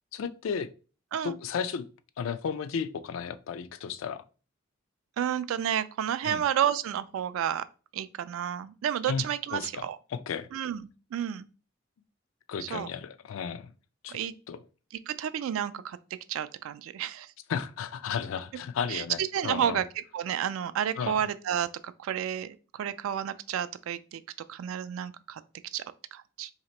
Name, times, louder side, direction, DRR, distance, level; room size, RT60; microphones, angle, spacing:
voice 1, 0.1-0.7 1.2-1.9 2.2-4.2 6.2-6.4 9.1-9.2 9.5-10.5 12.5-13.7 14.0-14.2 14.5-14.6 17.5-19.2 19.4-19.8 21.0-21.2, left 6 dB, 80° left, 0.3 m, -33 dB
voice 2, 5.2-7.6 7.9-10.0 10.5-11.5 12.6-12.9 14.1-14.3 15.1-16.0 16.3-17.3 18.9-19.9 20.1-24.2 24.5-25.4 25.7-25.8 26.1-26.5, right 9 dB, 90° right, 0.3 m, -31 dB
2.8 x 2.8 x 4.2 m
head